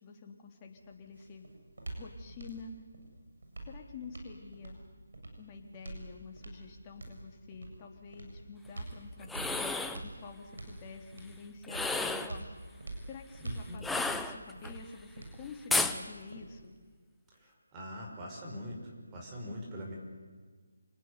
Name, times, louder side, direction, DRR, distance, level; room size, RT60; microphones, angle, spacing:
voice 1, 0.0-1.5 2.0-2.7 3.7-4.8 5.4-9.7 10.0-12.5 13.1-16.7, left 5 dB, 25° left, 2 dB, 3.5 m, -48 dB
sound 1, 0.7-16.7, right 2 dB, 70° right, 7.9 m, -46 dB
sound 2, 9.2-10.0 11.6-12.4 13.8-14.7 15.7-16.0, left 3 dB, 5° left, 0.9 m, -32 dB
voice 2, 13.4-13.8 17.7-18.8 19.1-19.9, equal, 20° right, -2 dB, 5.9 m, -42 dB
28.0 x 19.5 x 9.9 m, 1.5 s
figure-of-eight pair, 160°, 0 cm